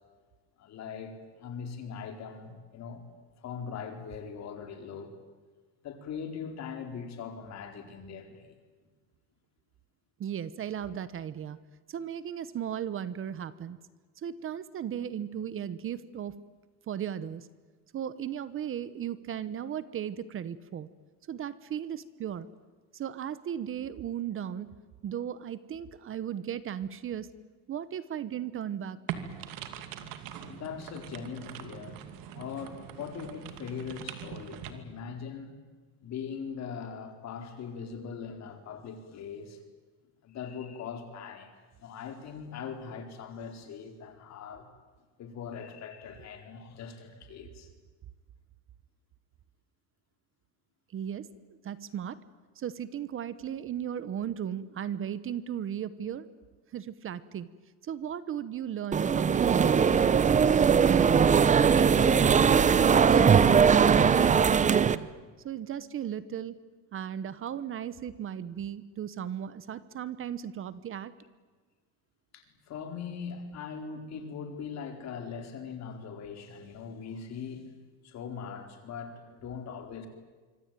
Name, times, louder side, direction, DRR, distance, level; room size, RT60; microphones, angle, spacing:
voice 1, 0.6-3.0 3.4-5.1 5.8-8.5 30.4-32.0 32.3-35.5 36.0-39.6 40.2-41.5 41.8-44.7 45.2-47.7 60.7-60.9 72.3-77.6 78.0-80.1, left 6 dB, 50° left, 5 dB, 4.5 m, -41 dB
voice 2, 10.2-11.6 11.9-13.8 14.2-16.3 16.9-17.5 17.9-20.9 21.3-22.5 22.9-24.7 25.0-27.3 27.7-29.0 50.9-51.3 51.6-52.2 52.6-56.3 56.7-57.5 57.8-60.3 61.5-63.2 63.7-65.1 65.4-66.6 66.9-71.1, right 9 dB, 40° right, 15 dB, 1.1 m, -36 dB
sound 1, 29.1-34.7, right 10 dB, 80° right, 2.6 m, -42 dB
sound 2, 58.9-65.0, right 6 dB, 20° right, 0.8 m, -20 dB
25.5 x 25.0 x 9.2 m, 1.4 s
cardioid pair, 150°, 34 cm